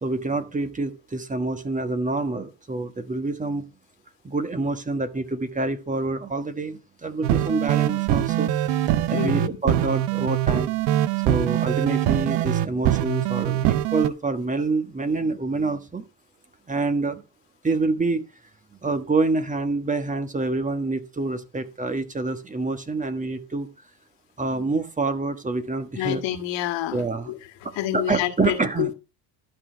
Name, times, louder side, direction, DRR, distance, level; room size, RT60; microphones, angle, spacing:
voice 1, 0.0-3.6 4.2-10.7 11.2-16.0 16.7-17.2 17.6-18.2 18.8-23.7 24.4-26.2 26.9-27.3 27.9-28.9, right 3 dB, 15° right, 1.4 m, -27 dB
sound 1, 7.2-14.1, right 12 dB, 70° right, 0.9 m, -23 dB
voice 2, 9.1-9.5 25.9-27.4 27.7-28.9, left 13 dB, 70° left, 2.0 m, -28 dB
12.5 x 4.2 x 7.7 m
supercardioid pair, 100°, 45 cm